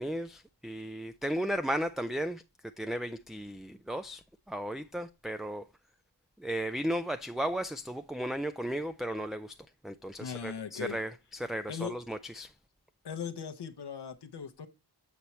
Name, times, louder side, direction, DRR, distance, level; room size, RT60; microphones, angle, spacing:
voice 1, 0.0-2.4 2.8-5.6 6.4-9.6 9.8-12.5, equal, ahead, 0.4 m, -35 dB
voice 2, 10.2-11.0 11.7-11.9 13.0-14.7, left 7 dB, 75° left, 0.8 m, -38 dB
8.4 x 4.5 x 4.2 m
wide cardioid pair, 60°, 41 cm